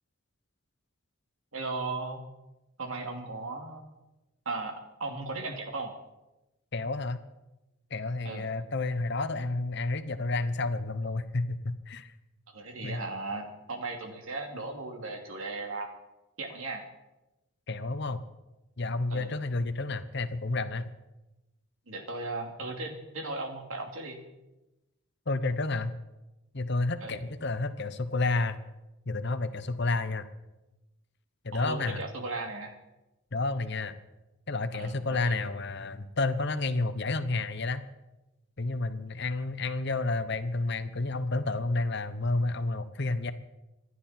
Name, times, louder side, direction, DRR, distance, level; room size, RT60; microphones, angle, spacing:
voice 1, 1.5-2.2 2.8-3.8 4.4-5.9 8.2-8.5 12.5-15.9 16.4-16.8 19.1-19.3 21.9-24.2 27.0-27.2 31.5-32.8 34.7-35.4, right 3 dB, 70° right, 3 dB, 2.8 m, -36 dB
voice 2, 6.7-7.2 7.9-12.1 12.8-13.0 17.7-18.2 18.8-20.9 25.3-26.0 26.5-28.6 29.1-30.3 31.4-32.0 33.3-33.9 34.5-37.8 38.6-43.3, left 3 dB, 55° left, 11 dB, 1.0 m, -30 dB
26.0 x 11.0 x 4.4 m, 1.0 s
head